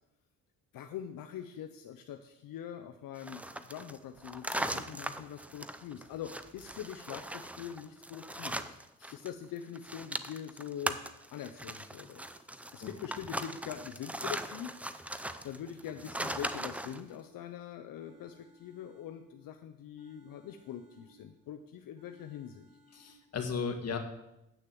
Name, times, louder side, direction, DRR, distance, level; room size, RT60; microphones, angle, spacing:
voice 1, 0.7-8.8 9.1-11.0 11.3-12.2 12.7-22.7, left 9 dB, 75° left, 6 dB, 0.8 m, -43 dB
sound 1, 3.2-9.3 9.6-17.0, right 1 dB, 5° right, 0.5 m, -39 dB
sound 2, 16.8-17.6 18.0-19.6 20.0-21.5 22.0-23.4, equal, 70° right, 2.8 m, -64 dB
voice 2, 22.9-24.0, left 5 dB, 45° left, 5 dB, 1.7 m, -35 dB
8.6 x 6.6 x 7.7 m, 0.90 s
cardioid pair, 105°, 34 cm